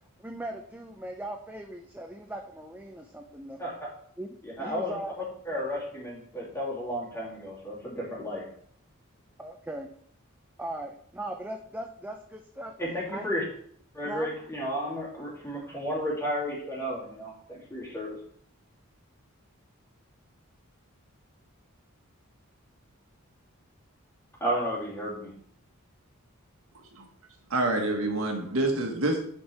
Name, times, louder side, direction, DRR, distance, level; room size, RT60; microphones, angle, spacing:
voice 1, 0.2-3.7 4.2-5.3 9.4-9.9 10.6-13.3 14.0-14.3, right 1 dB, 10° right, 3 dB, 0.5 m, -39 dB
voice 2, 4.4-5.0 5.5-8.4 12.8-13.4 13.9-18.2 24.4-25.3, equal, 15° left, -5 dB, 2.6 m, -33 dB
voice 3, 27.5-29.2, right 2 dB, 75° right, 2 dB, 1.5 m, -27 dB
9.9 x 4.5 x 3.3 m, 0.62 s
head